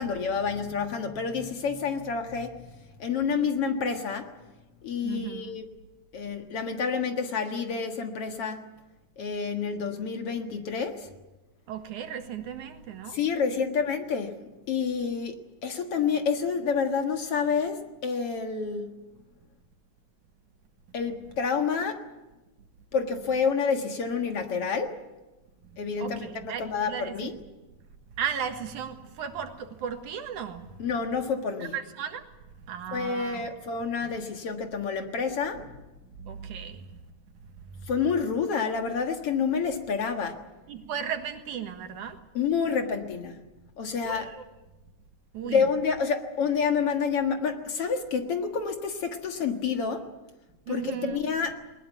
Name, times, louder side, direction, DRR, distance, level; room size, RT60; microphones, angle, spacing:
voice 1, 0.0-4.3 4.8-5.6 6.1-8.6 9.2-11.1 13.1-14.4 14.7-19.0 20.9-22.0 22.9-24.9 25.8-27.3 30.8-31.7 32.9-35.8 37.9-40.4 42.3-43.4 43.8-44.3 45.4-50.1 50.7-51.5, left 6 dB, 55° left, 5 dB, 2.4 m, -28 dB
voice 2, 5.0-5.6 11.7-13.2 25.6-27.4 28.2-30.8 31.6-32.3 32.6-33.5 34.0-34.1 36.2-37.1 37.4-37.9 40.7-42.2 44.0-44.4 45.3-45.7 50.7-51.2, right 8 dB, 80° right, 7 dB, 3.1 m, -36 dB
20.5 x 20.5 x 9.1 m, 1.1 s
omnidirectional pair, 3.4 m